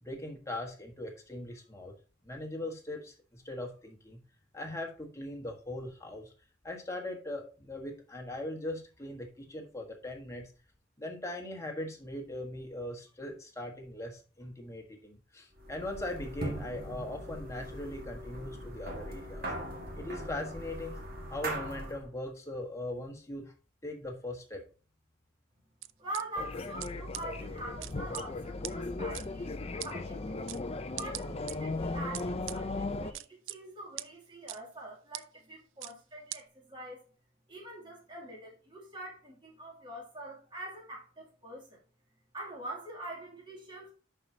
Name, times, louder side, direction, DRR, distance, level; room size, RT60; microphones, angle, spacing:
voice 1, 0.0-1.9 2.2-4.2 4.5-6.3 6.6-10.5 11.0-19.5 19.9-21.0 21.3-23.5 23.8-24.6, left 1 dB, 15° left, 1.4 m, -40 dB
sound 1, 15.6-22.1, right 1 dB, 50° right, 1.7 m, -40 dB
sound 2, 25.8-26.2 26.8-26.9 27.1-27.2 27.8-28.2 28.6-28.7 29.1-29.2 29.8-29.9 30.5-30.6 31.0-31.5 32.1-32.6 33.1-33.6 34.0-34.1 34.5-34.6 35.1-35.2 35.8-35.9 36.3-36.4, right 15 dB, 85° right, 0.4 m, -39 dB
voice 2, 26.0-30.5 30.9-37.0 37.5-41.8 42.3-43.9, right 1 dB, 25° right, 2.7 m, -44 dB
sound 3, 26.4-33.1, left 2 dB, 30° left, 0.5 m, -37 dB
10.5 x 4.6 x 2.8 m
head